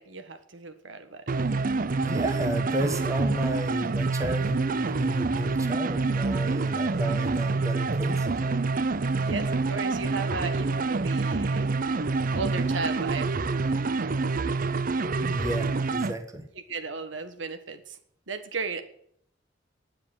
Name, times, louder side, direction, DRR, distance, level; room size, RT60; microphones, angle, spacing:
voice 1, 0.0-1.3 9.2-11.7 12.3-13.3 13.7-13.9 16.7-18.0 18.3-18.8, right 4 dB, 80° right, 8 dB, 1.5 m, -35 dB
sound 1, 1.3-16.1, right 3 dB, 50° right, 0.6 m, -27 dB
voice 2, 1.9-8.5 15.2-16.4, right 1 dB, 15° right, 6 dB, 1.5 m, -32 dB
9.8 x 7.7 x 8.8 m, 0.66 s
head